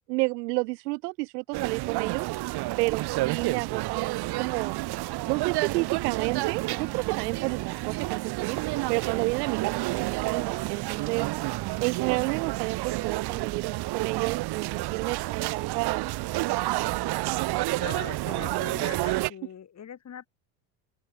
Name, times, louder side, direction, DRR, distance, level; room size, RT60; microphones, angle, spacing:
voice 1, 0.0-2.3 2.8-4.8 5.3-8.6 8.9-11.3 11.8-16.1, right 25 dB, 75° right, 0.9 m, -31 dB
sound 1, 1.5-19.3, right 19 dB, 50° right, 1.5 m, -30 dB
voice 2, 17.8-20.3, left 8 dB, 35° left, 6.2 m, -42 dB
open air
supercardioid pair, 100°, 48 cm